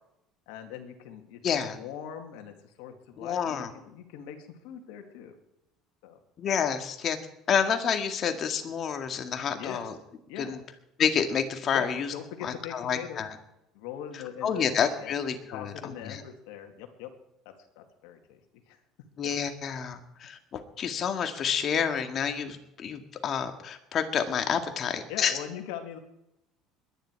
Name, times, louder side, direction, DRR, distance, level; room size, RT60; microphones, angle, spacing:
voice 1, 0.5-5.4 6.0-6.2 9.5-9.8 10.3-10.6 11.7-13.2 13.7-15.1 15.5-17.1 17.8-18.4 18.7-18.8 25.1-26.0, left 9 dB, 80° left, 4 dB, 2.4 m, -41 dB
voice 2, 1.4-1.8 3.2-3.7 6.4-7.2 7.5-9.9 10.4-10.6 11.0-12.1 12.4-13.3 14.4-15.7 16.0-16.2 19.2-25.3, left 7 dB, 45° left, 7 dB, 2.1 m, -29 dB
21.5 x 10.0 x 4.8 m, 0.84 s
supercardioid pair, 100°, 0 cm